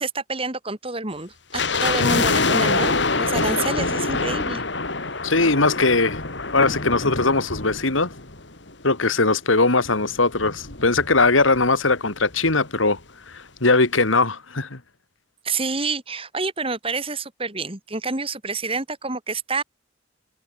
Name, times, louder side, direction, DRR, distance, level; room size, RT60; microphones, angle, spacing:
voice 1, 0.0-4.6 15.4-19.6, right 3 dB, 30° right, 3.7 m, -28 dB
sound 1, 1.5-8.8 9.1-9.2 9.8-11.7 11.9-12.0 12.2-12.5 13.0-13.1, left 3 dB, 60° left, 3.2 m, -25 dB
voice 2, 5.2-6.2 6.5-8.1 8.8-13.0 13.3-14.8, left 3 dB, 85° left, 3.0 m, -20 dB
head